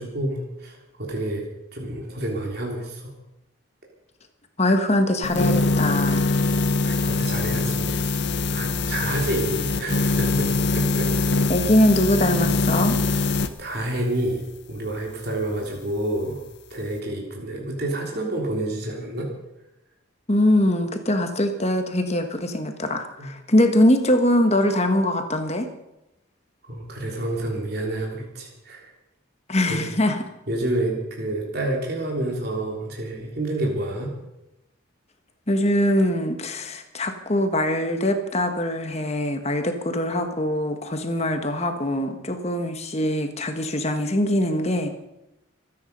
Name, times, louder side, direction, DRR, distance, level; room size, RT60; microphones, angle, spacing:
voice 1, 0.0-3.1 6.8-8.1 8.5-11.4 13.1-13.3 13.6-19.3 23.2-23.3 26.7-28.9 29.7-29.8 30.5-34.1, right 1 dB, 50° right, -1 dB, 3.5 m, -29 dB
voice 2, 4.6-6.3 11.5-13.0 20.3-25.7 29.5-30.2 35.5-44.9, left 1 dB, 30° left, 6 dB, 1.4 m, -22 dB
sound 1, 5.2-13.5, left 3 dB, 55° left, 1.0 m, -23 dB
24.5 x 9.8 x 5.4 m, 0.90 s
head